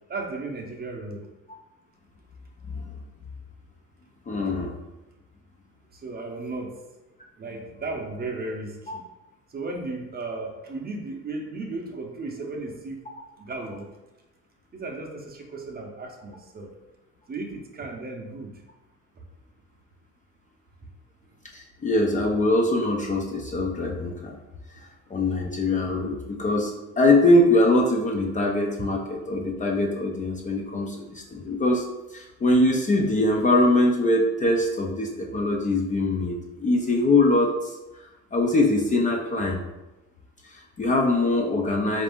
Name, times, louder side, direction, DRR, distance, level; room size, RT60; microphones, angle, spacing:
voice 1, 0.1-1.2 6.0-6.7 7.4-9.0 9.5-13.0 13.4-13.8 14.7-16.7 17.3-18.5, right 3 dB, 30° right, 1 dB, 0.7 m, -35 dB
voice 2, 4.3-4.8 8.9-9.0 21.5-24.4 25.1-31.9 32.1-37.8 38.3-39.6 40.5-42.0, left 2 dB, 25° left, 0 dB, 0.5 m, -22 dB
4.1 x 2.6 x 3.5 m, 1.0 s
cardioid pair, 115°, 31 cm